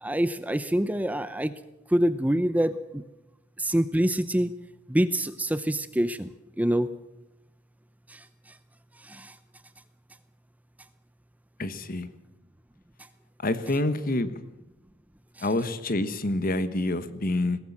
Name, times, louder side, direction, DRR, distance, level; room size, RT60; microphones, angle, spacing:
voice 1, 0.0-1.5 1.9-3.0 3.6-4.5 4.9-6.3 6.6-6.9 8.1-8.2 9.1-9.3 15.4-15.5, right 1 dB, 10° right, 0.6 m, -25 dB
voice 2, 11.6-12.1 13.4-14.3 15.4-17.6, left 2 dB, 45° left, 1.3 m, -27 dB
21.0 x 17.5 x 7.4 m
head